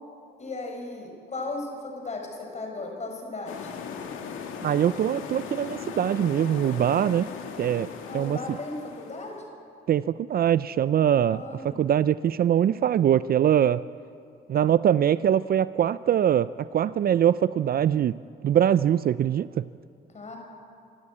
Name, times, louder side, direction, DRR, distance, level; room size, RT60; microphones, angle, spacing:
voice 1, 0.4-3.7 8.0-9.3 11.2-11.8 20.1-20.4, left 2 dB, 35° left, 1 dB, 5.7 m, -36 dB
sound 1, 3.5-9.4, left 6 dB, 90° left, 2.0 m, -38 dB
voice 2, 4.6-7.3 7.6-7.9 8.1-8.6 9.9-13.9 14.5-19.7, right 10 dB, 50° right, 17 dB, 0.4 m, -23 dB
26.5 x 12.0 x 8.6 m, 2.5 s
cardioid pair, 90°, 20 cm